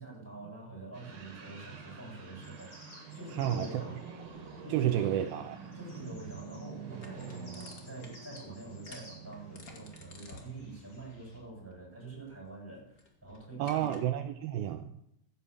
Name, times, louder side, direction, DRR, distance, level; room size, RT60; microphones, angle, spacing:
voice 1, 0.0-4.0 4.6-5.1 5.7-14.0, right 2 dB, 5° right, -1 dB, 7.5 m, -46 dB
sound 1, 0.9-10.3, right 5 dB, 50° right, 3.6 m, -46 dB
sound 2, 1.3-11.4, equal, 20° left, 4.6 m, -57 dB
voice 2, 3.3-3.8 4.7-5.6 13.6-14.9, right 11 dB, 80° right, 6 dB, 2.2 m, -30 dB
sound 3, 4.1-14.0, left 3 dB, 65° left, 0.8 m, -56 dB
15.5 x 9.3 x 7.2 m, 0.74 s
omnidirectional pair, 5.1 m